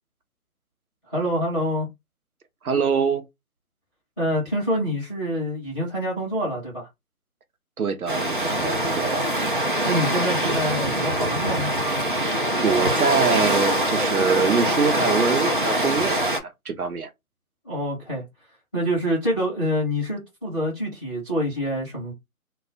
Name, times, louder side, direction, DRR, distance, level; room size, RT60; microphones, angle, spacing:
voice 1, 1.1-1.9 4.2-6.9 9.8-11.7 17.6-18.2 18.7-22.1, equal, ahead, 0.8 m, -26 dB
voice 2, 2.6-3.2 7.8-9.2 12.6-17.1, right 5 dB, 80° right, 0.7 m, -24 dB
sound 1, 8.1-16.4, right 1 dB, 40° right, 0.4 m, -23 dB
2.3 x 2.2 x 3.6 m
figure-of-eight pair, 155°, 44 cm